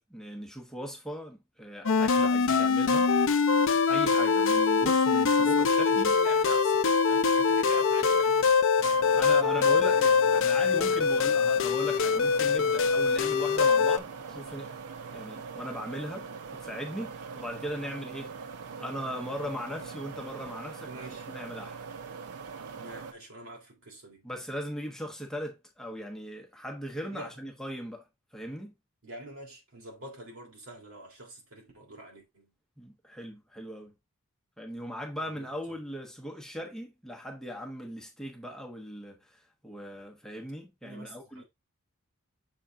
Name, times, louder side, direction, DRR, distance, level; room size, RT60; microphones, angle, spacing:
voice 1, 0.0-3.1 3.9-6.1 9.1-14.8 15.1-18.3 18.8-20.9 21.3-21.8 24.2-28.1 28.3-28.7 32.8-33.9 34.6-41.4, equal, ahead, 1.1 m, -39 dB
sound 1, 1.9-14.0, left 5 dB, 60° left, 0.5 m, -23 dB
voice 2, 5.4-8.8 20.8-21.3 22.7-24.3 27.1-27.3 29.0-32.5 35.2-35.8 40.8-41.4, right 1 dB, 65° right, 3.3 m, -45 dB
sound 2, 8.8-23.1, right 5 dB, 85° right, 0.6 m, -42 dB
6.8 x 4.1 x 3.7 m
head